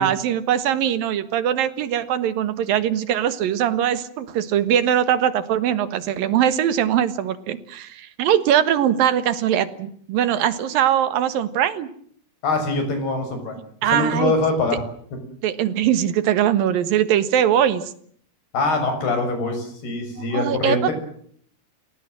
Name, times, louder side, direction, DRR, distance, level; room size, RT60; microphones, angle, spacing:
voice 1, 0.0-11.9 13.8-14.3 15.4-17.8 20.3-20.9, right 10 dB, 65° right, 13 dB, 3.0 m, -21 dB
voice 2, 12.4-13.6 13.9-14.8 18.5-20.9, left 3 dB, 70° left, 7 dB, 8.2 m, -23 dB
30.0 x 18.0 x 7.7 m, 0.64 s
omnidirectional pair, 4.7 m